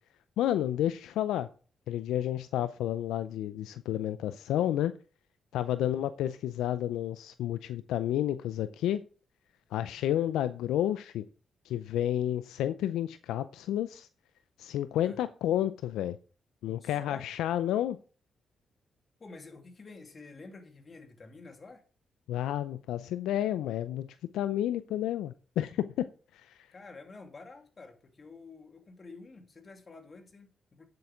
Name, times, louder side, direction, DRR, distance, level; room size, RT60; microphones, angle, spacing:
voice 1, 0.4-1.5 1.9-4.9 5.5-9.0 9.7-11.2 11.7-14.1 14.6-16.2 16.6-18.0 22.3-24.1 24.3-26.1 26.3-26.6, left 12 dB, 85° left, 0.5 m, -30 dB
voice 2, 5.7-6.1 10.1-10.3 15.0-15.2 16.8-17.3 19.2-21.8 26.7-30.8, left 3 dB, 45° left, 2.5 m, -49 dB
9.5 x 7.8 x 5.0 m
supercardioid pair, 50°, 0 cm